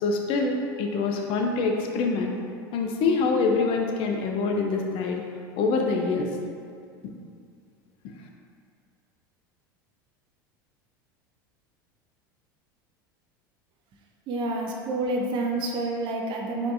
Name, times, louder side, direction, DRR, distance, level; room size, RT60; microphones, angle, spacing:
voice 1, 0.0-2.3 2.7-5.2 5.6-6.3, left 4 dB, 50° left, 2 dB, 0.5 m, -25 dB
voice 2, 14.3-16.7, right 2 dB, 45° right, 0 dB, 0.5 m, -28 dB
4.4 x 2.7 x 2.5 m, 2.3 s
hypercardioid pair, 85°, 11 cm